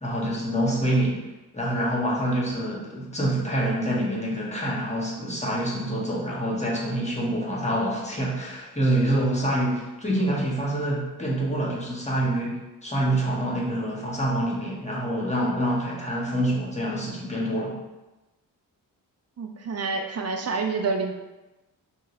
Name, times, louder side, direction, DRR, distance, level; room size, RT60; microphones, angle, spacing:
voice 1, 0.0-1.2 1.5-17.7, right 1 dB, 15° left, -4 dB, 1.1 m, -26 dB
voice 2, 19.4-21.1, right 4 dB, 40° right, 4 dB, 0.5 m, -28 dB
3.8 x 2.5 x 2.5 m, 1.1 s
supercardioid pair, 40°, 42 cm